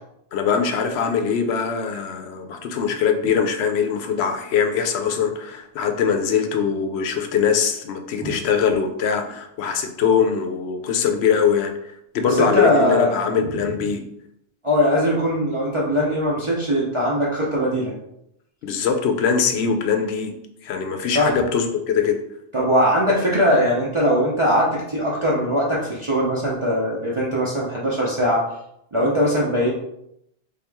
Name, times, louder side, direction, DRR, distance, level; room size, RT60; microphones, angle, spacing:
voice 1, 0.3-11.7 12.1-14.0 18.6-22.2, left 6 dB, 75° left, 6 dB, 0.8 m, -22 dB
voice 2, 12.2-13.6 14.6-17.9 21.1-21.4 22.5-28.4 28.9-29.7, equal, 30° right, -7 dB, 0.7 m, -21 dB
3.5 x 3.0 x 3.4 m, 0.78 s
omnidirectional pair, 1.1 m